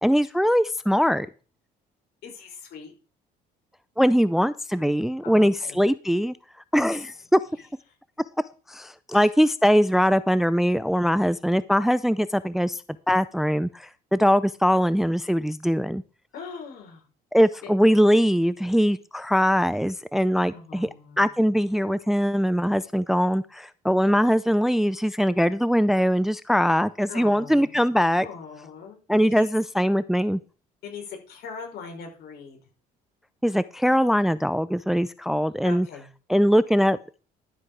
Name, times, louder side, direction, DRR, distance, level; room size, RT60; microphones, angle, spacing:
voice 1, 0.0-1.3 4.0-6.4 6.7-7.4 8.7-12.8 13.1-16.0 17.3-20.9 21.2-28.3 29.1-30.4 33.4-35.9 36.3-37.0, equal, ahead, 15 dB, 0.5 m, -21 dB
voice 2, 2.2-2.9 5.2-5.8 6.9-7.1 9.1-9.3 16.3-17.0 17.6-17.7 20.5-21.3 27.1-27.8 28.2-29.5 30.8-32.6 35.6-36.1, left 5 dB, 70° left, 2 dB, 5.3 m, -41 dB
12.0 x 7.7 x 4.7 m, 0.35 s
cardioid pair, 110°, 17 cm